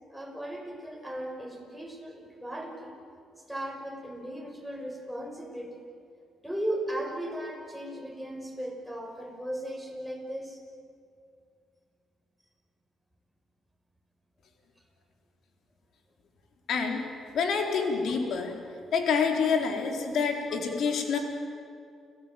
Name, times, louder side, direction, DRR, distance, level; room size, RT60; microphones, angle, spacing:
voice 1, 0.1-3.0 3.5-5.8 6.4-10.6 21.1-21.2, right 1 dB, ahead, 0 dB, 6.1 m, -36 dB
voice 2, 16.7-17.1 17.3-18.6 18.9-21.2, left 5 dB, 70° left, 3 dB, 4.0 m, -27 dB
30.0 x 16.0 x 9.3 m, 2.4 s
cardioid pair, 90°, 0 cm